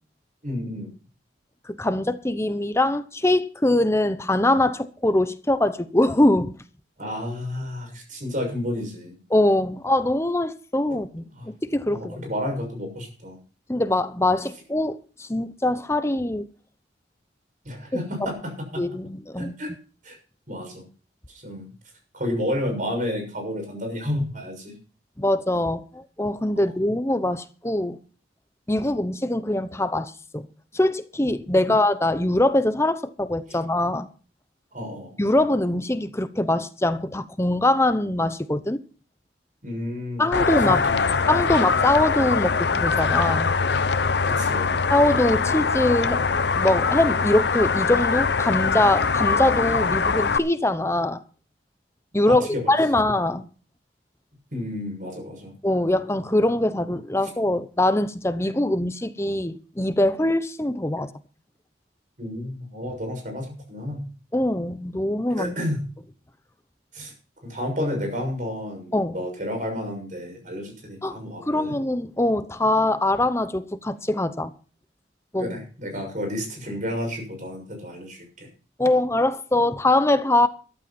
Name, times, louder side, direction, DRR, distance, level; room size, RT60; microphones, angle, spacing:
voice 1, 0.4-0.9 7.0-9.1 10.9-11.0 11.3-11.5 11.9-13.4 17.6-19.0 19.4-19.7 20.0-20.2 20.5-20.9 21.3-21.7 22.1-24.8 26.6-26.7 33.5-33.6 34.7-35.2 39.6-41.5 44.2-44.8 52.3-52.7 54.5-55.5 62.2-64.0 65.4-65.8 66.9-67.1 67.4-71.8 75.4-78.5, left 1 dB, 45° right, 6.5 m, -31 dB
voice 2, 1.8-6.5 9.3-12.3 13.7-16.5 18.8-19.5 25.2-28.0 28.7-30.4 30.7-34.1 35.2-38.8 40.2-40.9 41.3-43.5 44.9-46.2 46.6-51.2 52.1-53.5 55.6-61.1 64.3-65.5 68.9-69.2 71.0-71.2 71.4-74.5 75.3-75.5 78.8-80.5, left 1 dB, 15° left, 0.9 m, -23 dB
sound 1, 40.3-50.4, left 5 dB, 60° left, 0.7 m, -23 dB
14.0 x 12.5 x 4.4 m
head